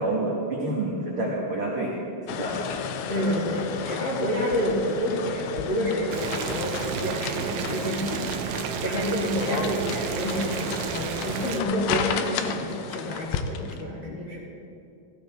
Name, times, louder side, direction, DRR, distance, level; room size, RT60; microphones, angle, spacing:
voice 1, 0.0-2.0 2.3-2.7 3.1-3.3, right 2 dB, 65° right, -4 dB, 1.3 m, -28 dB
sound 1, 2.3-13.8, left 7 dB, 80° left, 2.2 m, -33 dB
voice 2, 3.1-8.3 8.8-14.4, equal, 55° left, -6 dB, 1.3 m, -29 dB
Boiling, 6.1-11.6, right 8 dB, 85° right, 2.4 m, -31 dB
16.0 x 15.5 x 3.6 m, 2.6 s
omnidirectional pair, 5.0 m